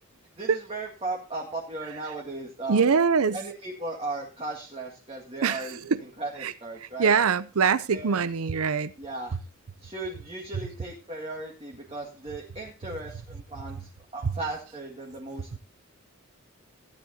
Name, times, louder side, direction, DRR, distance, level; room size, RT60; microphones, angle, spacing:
voice 1, 0.4-2.9 3.3-7.1 7.9-8.3 9.0-9.4 9.8-13.8 14.1-15.6, right 2 dB, 25° right, -2 dB, 1.9 m, -36 dB
voice 2, 2.7-3.4 5.4-6.0 6.4-6.5 7.0-8.9, right 6 dB, 90° right, 16 dB, 0.6 m, -23 dB
16.5 x 10.0 x 2.8 m, 0.32 s
head